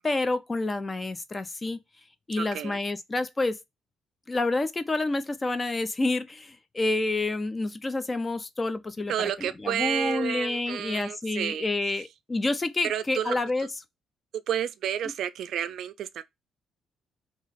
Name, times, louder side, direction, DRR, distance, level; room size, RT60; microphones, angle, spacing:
voice 1, 0.0-1.8 2.3-3.6 4.3-13.7, left 2 dB, 20° left, 0.4 m, -28 dB
voice 2, 2.4-2.8 9.1-12.0 12.8-13.4 14.5-16.2, right 9 dB, 65° right, 0.4 m, -31 dB
3.0 x 2.3 x 4.0 m
cardioid pair, 130°, 0 cm